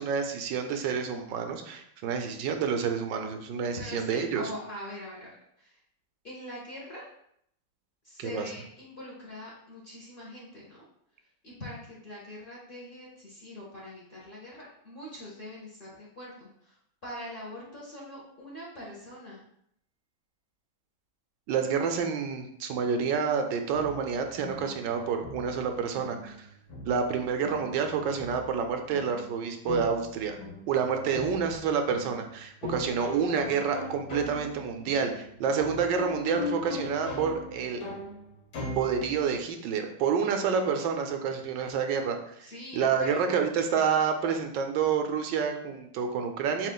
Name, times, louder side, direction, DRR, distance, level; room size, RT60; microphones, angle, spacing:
voice 1, 0.0-4.5 8.2-8.4 21.5-26.5 26.8-30.4 30.7-37.8 38.7-46.7, right 6 dB, 85° right, 5 dB, 1.2 m, -28 dB
voice 2, 3.8-5.8 6.2-7.0 8.0-10.8 11.4-19.4 42.4-43.2, left 1 dB, 45° left, -5 dB, 0.8 m, -43 dB
sound 1, 23.7-39.4, left 2 dB, 60° left, 1.3 m, -40 dB
7.2 x 2.4 x 2.2 m, 0.71 s
omnidirectional pair, 1.9 m